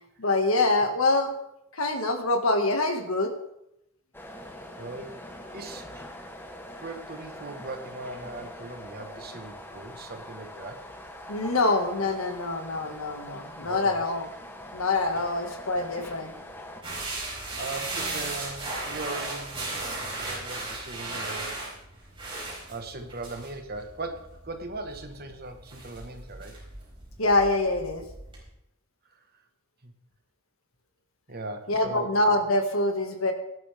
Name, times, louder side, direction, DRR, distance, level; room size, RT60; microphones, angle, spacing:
voice 1, 0.2-1.4 1.7-3.3 11.3-14.3 14.7-16.3 27.2-28.0 31.7-33.3, left 2 dB, 80° left, 5 dB, 1.9 m, -25 dB
sound 1, 4.1-16.8, left 1 dB, 10° left, 1.3 m, -43 dB
voice 2, 4.8-5.2 5.5-5.9 6.8-10.9 13.6-14.0 17.6-21.6 22.7-26.5 29.8-29.9 31.3-32.1, right 2 dB, 45° right, 6 dB, 1.5 m, -39 dB
sound 2, 16.8-28.5, right 2 dB, 25° right, 4.7 m, -36 dB
18.0 x 11.0 x 3.6 m, 0.82 s
head